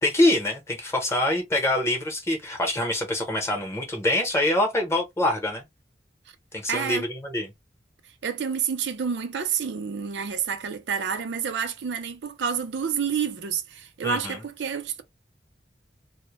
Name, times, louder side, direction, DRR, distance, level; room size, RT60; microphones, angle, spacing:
voice 1, 0.0-5.7 6.5-7.5 14.0-14.4, left 1 dB, 15° left, 0.8 m, -25 dB
voice 2, 6.7-7.0 8.2-15.0, right 7 dB, 80° right, 0.5 m, -29 dB
2.1 x 2.1 x 2.9 m
head